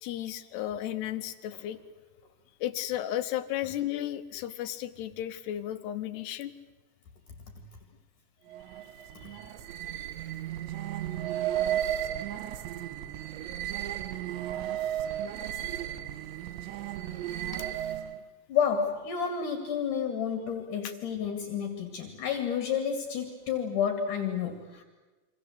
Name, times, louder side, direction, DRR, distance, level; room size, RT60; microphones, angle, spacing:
voice 1, 0.0-1.8 2.6-6.5 9.2-9.4 9.9-10.0 15.5-15.8 17.5-17.7 20.8-20.9, left 12 dB, 75° left, 10 dB, 3.0 m, -34 dB
sound 1, 8.5-18.2, right 11 dB, 85° right, 3.6 m, -34 dB
voice 2, 18.5-24.8, left 7 dB, 50° left, 6 dB, 3.5 m, -30 dB
28.5 x 25.0 x 8.0 m, 1.2 s
omnidirectional pair, 5.1 m